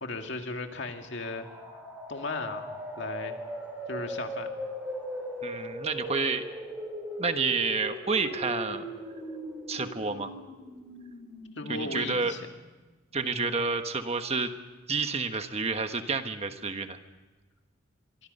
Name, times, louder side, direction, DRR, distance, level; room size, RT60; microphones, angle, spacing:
voice 1, 0.0-1.5 2.1-2.7 3.0-3.4 3.9-4.5 11.5-12.5 13.2-13.5, left 3 dB, 60° left, 4 dB, 2.3 m, -36 dB
sound 1, 0.9-12.6, equal, 10° right, 5.7 m, -39 dB
voice 2, 5.4-6.4 7.2-8.8 9.7-10.3 11.7-12.3 13.1-14.5 14.9-17.0, right 4 dB, 30° right, 8 dB, 1.2 m, -29 dB
25.0 x 24.5 x 5.5 m, 1.2 s
head